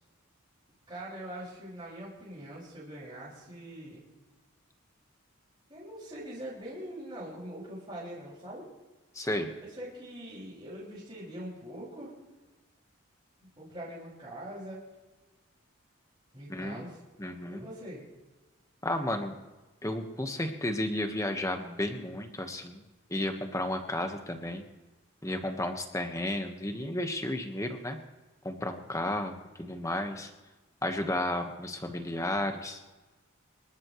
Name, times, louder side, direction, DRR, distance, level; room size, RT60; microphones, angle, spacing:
voice 1, 0.9-4.0 5.7-8.7 9.6-12.1 13.6-14.8 16.3-17.0 17.5-18.0, right 1 dB, 20° right, -7 dB, 6.0 m, -43 dB
voice 2, 9.1-9.5 16.5-16.8 17.2-17.6 18.8-19.4 19.8-22.8 23.1-24.6 25.2-28.0 28.4-30.3 30.8-32.8, left 1 dB, 15° left, 5 dB, 1.3 m, -33 dB
26.5 x 13.0 x 3.2 m, 1.2 s
head